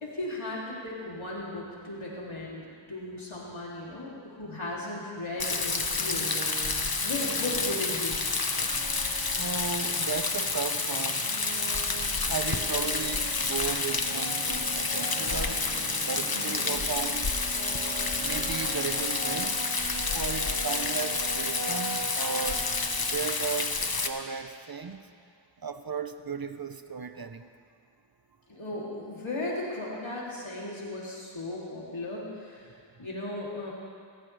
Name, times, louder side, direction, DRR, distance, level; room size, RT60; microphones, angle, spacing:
voice 1, 0.0-8.2 16.3-16.7 28.5-32.7 33.0-33.7, left 2 dB, 85° left, -6 dB, 3.1 m, -36 dB
Rain, 5.4-24.1, left 4 dB, 50° left, 1.1 m, -29 dB
sound 1, 5.9-23.5, right 4 dB, 75° right, 1.0 m, -42 dB
voice 2, 9.2-11.3 12.3-15.7 16.1-17.3 18.2-19.6 20.1-22.7 23.1-25.1 25.6-27.5, right 6 dB, 50° right, 9 dB, 0.8 m, -35 dB
28.0 x 14.5 x 3.4 m, 2.2 s
wide cardioid pair, 50°, 46 cm